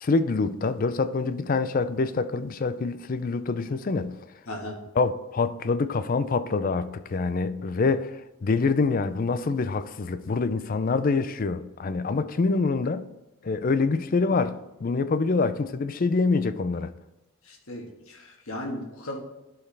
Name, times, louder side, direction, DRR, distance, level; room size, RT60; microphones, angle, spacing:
voice 1, 0.0-4.2 5.0-13.1 13.4-16.9, left 4 dB, 40° left, 0.4 m, -26 dB
voice 2, 4.5-4.8 17.4-19.2, left 1 dB, 80° left, 1.6 m, -36 dB
11.5 x 4.7 x 3.4 m
head